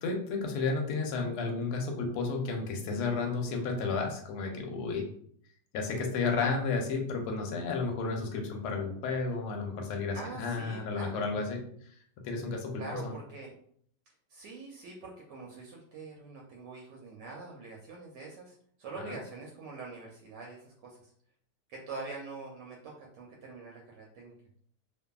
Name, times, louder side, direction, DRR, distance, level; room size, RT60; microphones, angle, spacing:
voice 1, 0.0-5.1 5.7-11.6 12.2-13.1 19.0-19.1, left 4 dB, 75° left, 2 dB, 1.0 m, -32 dB
voice 2, 10.1-11.3 12.8-13.5 14.3-21.1 21.7-24.3, right 3 dB, 75° right, -2 dB, 1.1 m, -44 dB
2.6 x 2.5 x 2.3 m, 0.63 s
omnidirectional pair, 1.9 m